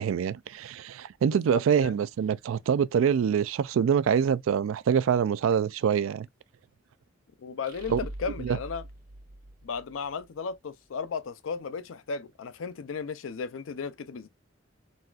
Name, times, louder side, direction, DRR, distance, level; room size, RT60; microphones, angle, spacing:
voice 1, 0.0-6.3 7.9-8.0 8.4-8.6, right 7 dB, 80° right, 0.3 m, -25 dB
voice 2, 1.3-1.9 7.4-8.8 9.6-14.3, left 5 dB, 80° left, 0.4 m, -35 dB
sound 1, 7.6-10.3, right 1 dB, 45° right, 1.3 m, -42 dB
4.0 x 2.4 x 2.2 m
head